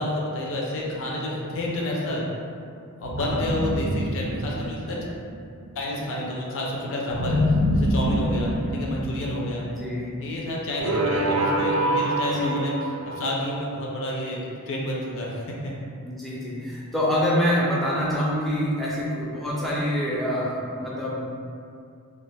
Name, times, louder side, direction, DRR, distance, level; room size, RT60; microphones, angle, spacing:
voice 1, 0.0-2.2 3.0-5.0 5.8-7.4 7.7-9.7 10.2-12.7 13.0-15.7, left 1 dB, 60° left, -3 dB, 0.4 m, -29 dB
sound 1, 0.8-1.7 3.0-5.6 7.1-10.2 10.8-13.3, equal, 70° right, 0.4 m, -26 dB
voice 2, 3.2-3.5 8.6-8.9 9.7-10.1 10.8-11.1 12.2-12.6 16.0-21.4, equal, ahead, -7 dB, 0.4 m, -26 dB
2.4 x 2.3 x 3.2 m, 2.4 s
head